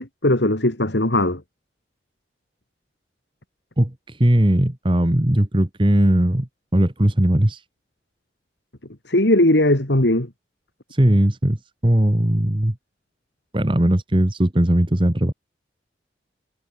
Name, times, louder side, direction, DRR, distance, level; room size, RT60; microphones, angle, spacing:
voice 1, 0.0-1.4 9.1-10.3, left 1 dB, 75° left, 3.1 m, -18 dB
voice 2, 3.8-7.6 10.9-12.7 13.5-15.3, right 1 dB, 25° right, 1.4 m, -19 dB
head